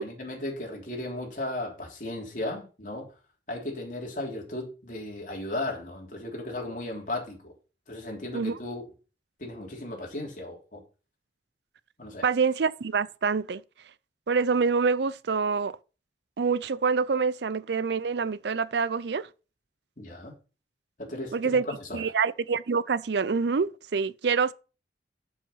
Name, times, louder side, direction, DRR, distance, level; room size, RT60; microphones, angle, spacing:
voice 1, 0.0-3.1 3.5-7.5 7.9-8.8 9.4-10.8 12.0-12.2 20.0-20.3 21.0-22.0, left 1 dB, 45° left, 3.3 m, -35 dB
voice 2, 12.2-13.6 14.3-15.8 16.4-19.3 21.3-21.6 21.9-24.5, right 5 dB, 70° right, 0.5 m, -26 dB
7.3 x 7.2 x 5.5 m
head